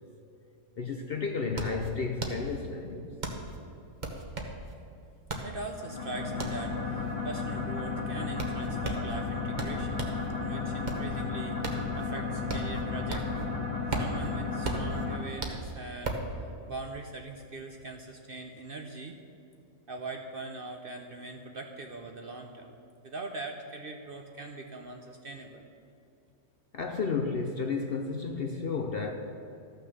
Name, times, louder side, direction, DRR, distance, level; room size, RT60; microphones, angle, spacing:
sound 1, 0.6-0.7 1.0-10.3 10.6-13.5 13.7-16.3, right 2 dB, 35° right, 1.1 m, -36 dB
voice 1, 0.8-3.1 26.7-29.1, left 4 dB, 55° left, 3 dB, 0.7 m, -32 dB
voice 2, 5.4-10.1 10.4-13.6 13.9-16.2 16.7-19.2 19.9-22.7 23.0-25.7, right 2 dB, 50° right, 3 dB, 0.7 m, -41 dB
sound 2, 5.8-15.2, left 4 dB, 25° left, 1.7 m, -34 dB
13.5 x 6.3 x 6.7 m, 2.8 s
omnidirectional pair, 1.6 m